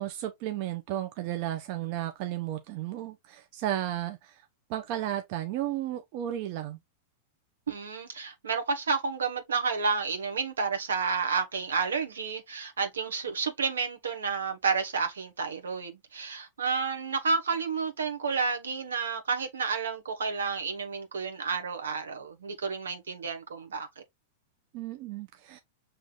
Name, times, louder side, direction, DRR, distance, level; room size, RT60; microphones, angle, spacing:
voice 1, 0.0-6.8 24.7-25.6, right 13 dB, 50° right, 0.6 m, -34 dB
voice 2, 7.7-23.9, right 5 dB, 80° right, 1.2 m, -30 dB
6.2 x 3.1 x 2.3 m
hypercardioid pair, 100°, 0 cm